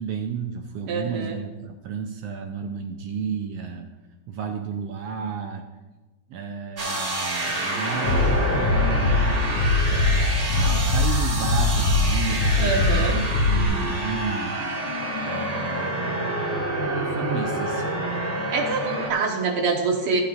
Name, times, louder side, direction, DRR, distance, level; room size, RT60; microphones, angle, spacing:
voice 1, 0.0-3.9 4.3-5.6 6.3-9.2 10.0-14.5 15.2-16.5 16.9-17.8, right 6 dB, 80° right, 4 dB, 1.4 m, -32 dB
voice 2, 0.9-1.4 12.6-13.2 18.5-20.2, right 4 dB, 55° right, 0 dB, 1.9 m, -25 dB
sound 1, 6.8-19.1, right 1 dB, 35° right, 1.1 m, -28 dB
Bass drum, 8.0-13.7, left 3 dB, 65° left, 5.3 m, -22 dB
16.0 x 8.5 x 2.5 m, 1.1 s
omnidirectional pair, 3.5 m